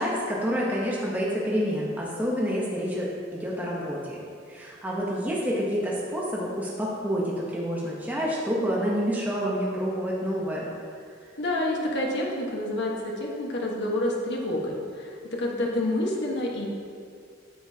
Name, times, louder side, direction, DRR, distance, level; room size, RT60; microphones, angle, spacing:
voice 1, 0.0-10.7, equal, 10° right, -5 dB, 0.9 m, -28 dB
voice 2, 11.4-16.7, left 1 dB, 65° left, -2 dB, 1.3 m, -28 dB
9.2 x 6.9 x 2.8 m, 2.2 s
head